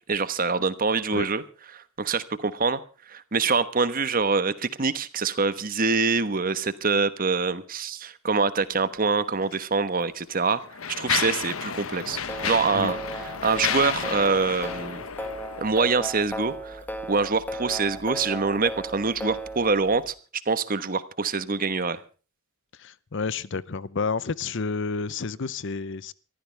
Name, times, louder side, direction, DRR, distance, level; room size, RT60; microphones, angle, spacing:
voice 1, 0.1-1.4 2.0-2.8 3.1-10.6 11.0-13.0 13.4-15.0 15.6-16.8 17.1-20.1 20.5-22.0, right 4 dB, 40° right, 13 dB, 1.2 m, -25 dB
Mechanisms, 9.4-9.6 10.3-16.1, left 7 dB, 75° left, 1.2 m, -32 dB
sound 1, 12.1-20.1, equal, 10° left, 1.5 m, -36 dB
voice 2, 22.8-26.1, left 4 dB, 60° left, 19 dB, 0.7 m, -30 dB
23.0 x 14.5 x 3.4 m, 0.37 s
head